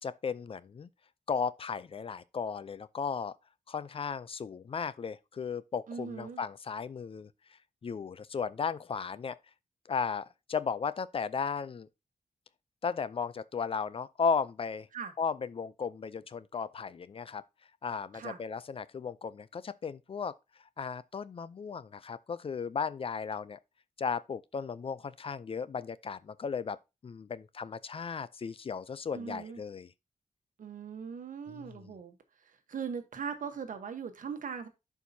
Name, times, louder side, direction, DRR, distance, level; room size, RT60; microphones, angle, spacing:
voice 1, 0.0-0.9 1.3-3.3 3.7-7.3 7.8-9.4 9.9-11.9 12.8-14.9 15.2-17.4 17.8-20.3 20.8-23.6 24.0-26.8 27.0-29.9 31.5-31.9, left 6 dB, 45° left, 0.4 m, -35 dB
voice 2, 5.9-6.4 14.9-15.1 18.1-18.4 29.1-29.6 30.6-32.1 32.7-34.7, right 6 dB, 80° right, 1.1 m, -39 dB
11.0 x 4.6 x 2.7 m
wide cardioid pair, 110°, 13 cm